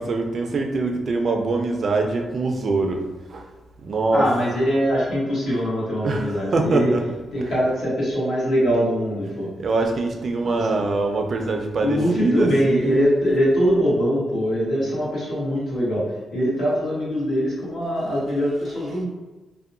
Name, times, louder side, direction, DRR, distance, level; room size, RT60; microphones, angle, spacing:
voice 1, 0.0-3.0 3.3-3.5 3.8-4.5 6.0-7.6 9.6-13.2, right 3 dB, 50° right, 3 dB, 0.3 m, -24 dB
voice 2, 4.1-6.9 7.3-9.5 10.4-10.8 11.8-19.1, equal, 70° left, -8 dB, 1.1 m, -22 dB
2.7 x 2.1 x 2.5 m, 1.2 s
cardioid pair, 120°, 0 cm